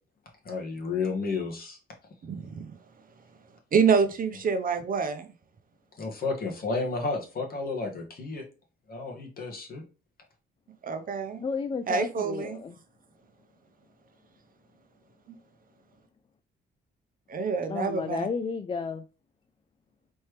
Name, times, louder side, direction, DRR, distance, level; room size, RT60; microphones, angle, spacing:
voice 1, 0.4-1.8 6.0-8.4 8.9-9.8, left 4 dB, 50° left, 1.6 m, -32 dB
voice 2, 2.2-2.7 3.7-5.3 10.8-11.4 11.9-12.6 17.3-18.3, right 5 dB, 45° right, 0.7 m, -26 dB
voice 3, 11.4-12.8 17.7-19.0, left 5 dB, 25° left, 0.4 m, -32 dB
4.3 x 3.2 x 3.2 m
cardioid pair, 90°, 20 cm